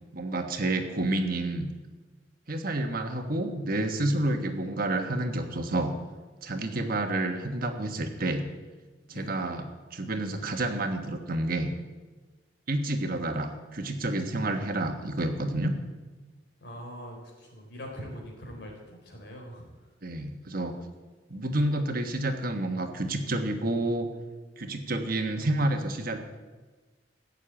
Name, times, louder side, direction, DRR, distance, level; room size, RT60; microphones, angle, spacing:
voice 1, 0.1-1.7 2.5-5.9 6.4-8.5 9.1-9.6 9.9-11.7 12.7-15.7 20.0-20.7 21.3-24.1 24.6-26.2, right 2 dB, 50° right, 5 dB, 1.3 m, -29 dB
voice 2, 16.6-19.9, equal, 65° left, 0 dB, 4.0 m, -43 dB
15.0 x 6.6 x 8.8 m, 1.3 s
head